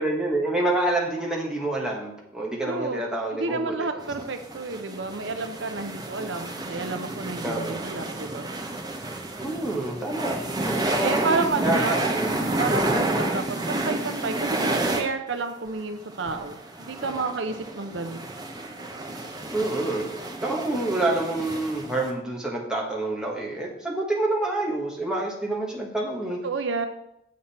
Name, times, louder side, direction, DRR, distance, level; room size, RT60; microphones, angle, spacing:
voice 1, 0.0-3.8 7.4-7.8 9.4-12.3 19.5-26.4, right 2 dB, 5° right, -2 dB, 1.4 m, -28 dB
voice 2, 2.6-3.0 3.3-8.5 11.0-12.1 12.6-18.3 26.4-26.9, right 3 dB, 70° right, 7 dB, 0.7 m, -30 dB
sound 1, 4.0-15.0 15.4-15.5 15.7-15.8 16.1-22.1, right 2 dB, 20° right, 0.9 m, -30 dB
7.6 x 7.3 x 4.3 m, 0.81 s
head